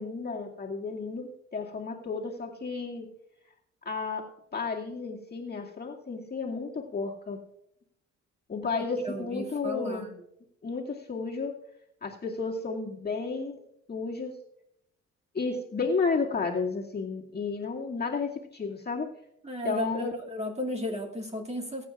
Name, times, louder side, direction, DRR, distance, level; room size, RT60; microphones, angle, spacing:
voice 1, 0.0-3.1 3.9-7.4 8.5-10.1 10.6-11.6 12.0-13.6 13.9-14.4 15.3-19.1 19.6-20.1, left 4 dB, 25° left, -2 dB, 2.3 m, -32 dB
voice 2, 8.8-10.2 19.4-21.9, left 1 dB, 20° right, 0 dB, 2.3 m, -34 dB
21.0 x 9.3 x 2.4 m, 0.79 s
hypercardioid pair, 45°, 36 cm